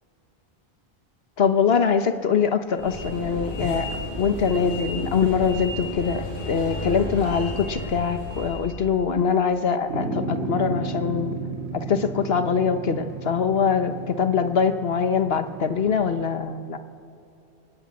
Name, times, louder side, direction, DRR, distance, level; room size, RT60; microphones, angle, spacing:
voice 1, 1.4-11.4 11.7-16.8, left 6 dB, 70° left, 9 dB, 1.4 m, -23 dB
sound 1, 2.8-8.7, left 1 dB, 50° left, 6.8 m, -32 dB
sound 2, 9.9-16.3, right 3 dB, 85° right, 2.9 m, -33 dB
28.0 x 19.0 x 8.6 m, 2.9 s
omnidirectional pair, 1.1 m